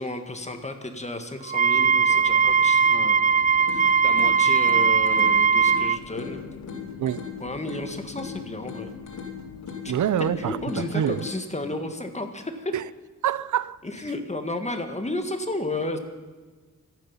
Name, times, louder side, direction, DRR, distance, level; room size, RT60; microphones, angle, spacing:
voice 1, 0.0-3.4 3.7-6.4 7.4-8.9 9.8-9.9 10.4-12.7 13.8-16.0, left 2 dB, 20° left, 1.7 m, -32 dB
Wind instrument woodwind instrument, 1.5-6.0, right 6 dB, 25° right, 0.5 m, -19 dB
sound 1, 1.7-11.2, left 6 dB, 65° left, 1.0 m, -43 dB
sound 2, 3.7-11.7, left 6 dB, 85° left, 2.7 m, -40 dB
voice 2, 9.9-11.2 12.7-12.9 13.2-13.8, right 10 dB, 80° right, 0.6 m, -26 dB
26.5 x 9.5 x 5.7 m
wide cardioid pair, 95°, 30 cm